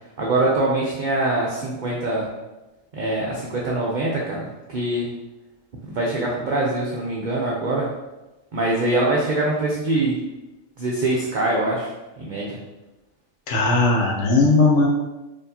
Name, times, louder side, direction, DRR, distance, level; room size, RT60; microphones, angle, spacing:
voice 1, 0.2-2.3 2.9-5.1 5.8-7.9 8.5-10.2 10.8-11.9 12.2-12.6, right 2 dB, 50° right, -4 dB, 0.6 m, -23 dB
voice 2, 13.5-14.9, left 3 dB, 80° left, -2 dB, 1.2 m, -17 dB
4.4 x 2.9 x 2.7 m, 1.0 s
omnidirectional pair, 1.3 m